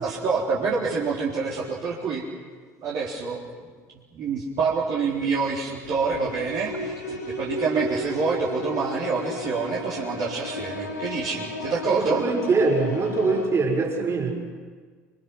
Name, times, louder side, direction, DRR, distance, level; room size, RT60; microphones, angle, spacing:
voice 1, 0.0-2.3 2.8-3.4 4.1-12.2, right 5 dB, 45° right, -5 dB, 4.1 m, -27 dB
sound 1, 5.8-13.5, left 1 dB, 85° left, 4.5 m, -34 dB
voice 2, 11.9-14.3, right 3 dB, 30° right, 1 dB, 6.2 m, -23 dB
28.5 x 23.5 x 6.2 m, 1.5 s
figure-of-eight pair, 70°, 9 cm